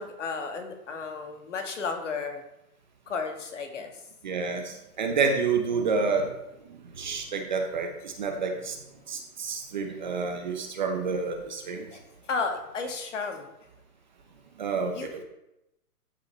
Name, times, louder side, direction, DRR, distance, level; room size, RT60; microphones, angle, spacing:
voice 1, 0.0-2.4 3.1-3.9 4.5-4.6 11.9-12.0 12.3-13.5 14.9-15.2, left 4 dB, 50° left, 4 dB, 1.8 m, -33 dB
voice 2, 4.2-6.3 6.9-8.8 9.1-11.9 14.6-15.2, right 4 dB, 30° right, 4 dB, 1.0 m, -29 dB
14.0 x 7.8 x 3.4 m, 0.86 s
hypercardioid pair, 170°, 46 cm